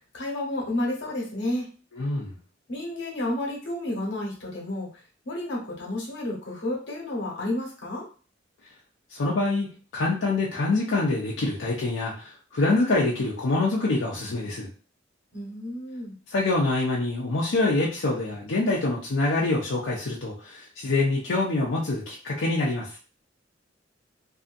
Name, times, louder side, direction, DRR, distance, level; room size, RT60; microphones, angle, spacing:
voice 1, 0.1-1.7 2.7-4.9 5.2-8.0 15.3-16.1, left 1 dB, 65° left, -3 dB, 1.1 m, -31 dB
voice 2, 2.0-2.3 9.1-9.7 9.9-14.7 16.3-23.0, left 2 dB, 90° left, -4 dB, 0.6 m, -25 dB
2.7 x 2.5 x 2.5 m, 0.38 s
head